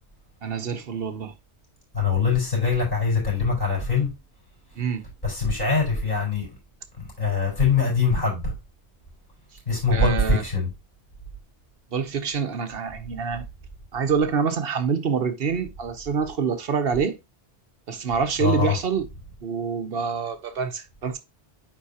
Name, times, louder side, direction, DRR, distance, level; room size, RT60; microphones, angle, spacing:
voice 1, 0.4-1.3 4.8-5.0 9.9-10.4 11.9-13.4 13.9-17.2 17.9-19.1 19.4-21.2, right 6 dB, 60° right, 1.1 m, -26 dB
voice 2, 1.9-4.1 5.2-6.5 7.2-8.5 9.7-10.7 18.4-18.8, left 4 dB, 45° left, 4.8 m, -22 dB
9.4 x 4.0 x 2.8 m
omnidirectional pair, 1.1 m